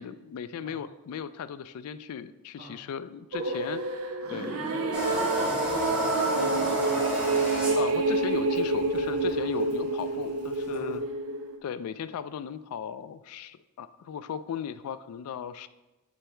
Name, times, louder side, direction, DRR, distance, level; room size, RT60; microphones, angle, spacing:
voice 1, 0.0-3.8 4.3-4.5 7.7-11.0 11.6-15.7, left 7 dB, 85° left, 14 dB, 0.3 m, -37 dB
sound 1, 3.3-11.6, right 2 dB, 70° right, 0.6 m, -28 dB
voice 2, 4.2-7.2 10.7-11.0, right 1 dB, 40° right, -4 dB, 1.6 m, -41 dB
sound 2, 4.9-11.0, right 1 dB, 5° right, 1.5 m, -33 dB
7.1 x 3.3 x 4.4 m, 1.1 s
head